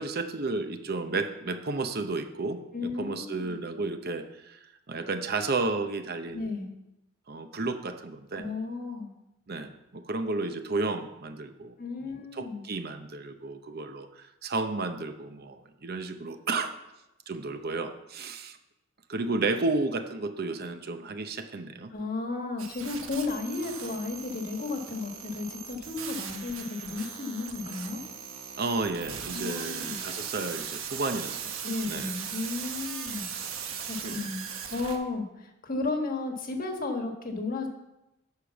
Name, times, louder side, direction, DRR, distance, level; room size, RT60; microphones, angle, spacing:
voice 1, 0.0-2.6 3.0-6.5 7.3-8.4 9.5-11.7 12.3-16.7 17.3-18.6 19.1-21.9 28.6-31.5 31.9-32.1 34.0-34.2, right 3 dB, 45° right, 8 dB, 0.7 m, -32 dB
voice 2, 2.7-3.5 6.3-6.7 8.4-9.1 11.8-12.6 21.9-28.0 29.3-30.0 31.6-33.3 33.8-37.7, left 3 dB, 40° left, 4 dB, 1.4 m, -34 dB
sound 1, 22.6-35.0, right 7 dB, 75° right, 1.2 m, -38 dB
11.5 x 5.0 x 6.9 m, 0.92 s
head